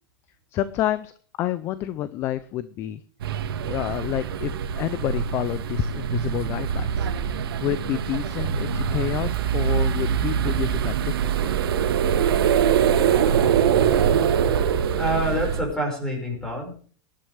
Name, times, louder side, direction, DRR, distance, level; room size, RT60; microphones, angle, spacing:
voice 1, 0.5-1.1 1.4-3.0 3.6-7.1 7.6-11.5, left 12 dB, 20° left, 15 dB, 0.5 m, -29 dB
sound 1, 3.2-15.6, right 7 dB, 85° right, 1.9 m, -26 dB
sound 2, 11.1-15.5, right 9 dB, 65° right, 2.2 m, -22 dB
voice 2, 15.0-16.9, right 1 dB, 5° left, 1 dB, 5.2 m, -27 dB
22.0 x 11.0 x 3.4 m, 0.43 s
supercardioid pair, 175°, 12 cm